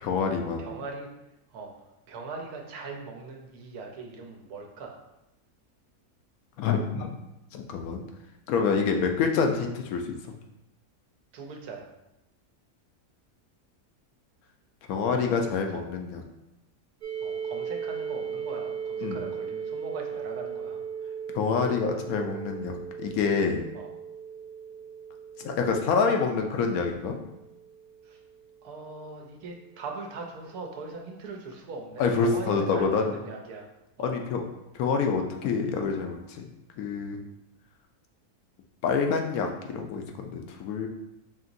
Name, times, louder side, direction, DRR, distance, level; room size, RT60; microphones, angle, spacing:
voice 1, 0.0-0.7 6.6-7.2 7.5-8.0 8.5-10.3 14.9-16.2 19.0-19.2 21.3-23.6 25.4-27.2 32.0-33.1 34.0-34.4 34.7-36.5 36.8-37.2 38.8-40.9, left 5 dB, 75° left, 3 dB, 1.0 m, -27 dB
voice 2, 0.6-1.1 1.5-1.7 2.1-5.0 11.3-11.9 15.7-15.8 17.2-20.8 21.6-21.8 23.7-23.9 28.0-28.2 28.6-33.7 34.0-34.2, right 3 dB, 85° right, 1 dB, 1.2 m, -40 dB
sound 1, 17.0-28.7, right 7 dB, 70° right, 0.4 m, -37 dB
5.2 x 2.9 x 2.6 m, 0.91 s
omnidirectional pair, 1.6 m